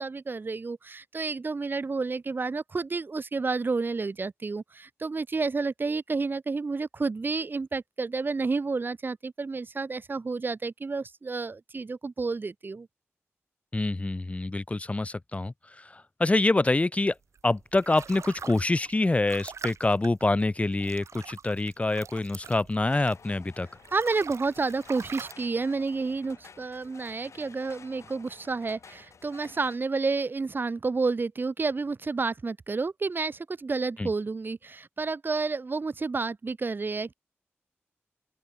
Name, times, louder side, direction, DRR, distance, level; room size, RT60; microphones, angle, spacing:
voice 1, 0.0-12.9 23.9-37.1, right 4 dB, 45° right, 0.4 m, -30 dB
voice 2, 13.7-17.2 17.4-23.7 34.0-34.1, left 2 dB, 25° left, 0.6 m, -26 dB
sound 1, 17.3-23.4 23.8-25.3, right 6 dB, 85° right, 1.5 m, -44 dB
sound 2, 22.8-29.8, left 6 dB, 80° left, 2.2 m, -52 dB
open air
cardioid pair, 45°, 5 cm